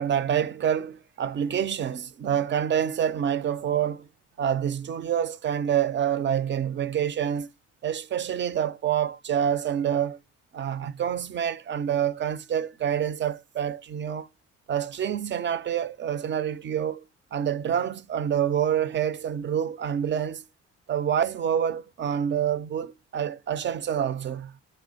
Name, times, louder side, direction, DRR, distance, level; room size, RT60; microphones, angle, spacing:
voice 1, 0.0-4.0 4.4-7.5 7.8-10.2 10.5-14.3 14.7-17.0 17.3-20.4 20.9-24.5, right 9 dB, 40° right, 0.4 m, -27 dB
4.2 x 3.2 x 3.7 m
cardioid pair, 90°, 30 cm